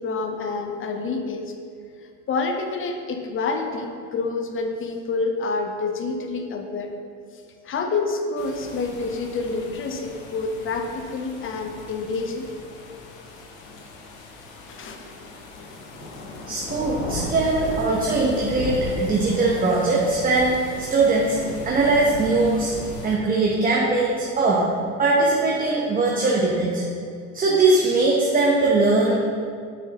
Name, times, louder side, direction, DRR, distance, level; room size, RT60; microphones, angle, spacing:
voice 1, 0.0-1.5 2.3-7.0 7.6-12.5 14.7-15.0, left 3 dB, 30° left, 5 dB, 0.8 m, -28 dB
sound 1, 8.4-23.2, left 3 dB, 85° left, 1.0 m, -36 dB
voice 2, 16.5-21.4 21.6-22.7 23.0-24.7 25.0-26.8 27.3-29.2, right 3 dB, 20° right, -3 dB, 0.9 m, -20 dB
6.4 x 6.4 x 3.0 m, 2.3 s
hypercardioid pair, 90°, 39 cm